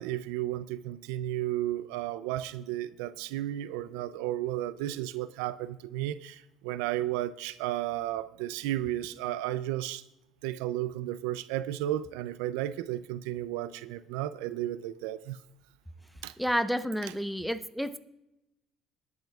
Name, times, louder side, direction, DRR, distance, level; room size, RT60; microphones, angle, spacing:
voice 1, 0.0-10.0 10.4-15.4 16.2-16.3, right 13 dB, 85° right, 0.4 m, -33 dB
voice 2, 16.4-18.0, equal, ahead, 0.9 m, -30 dB
21.5 x 10.5 x 2.4 m
supercardioid pair, 80°, 0 cm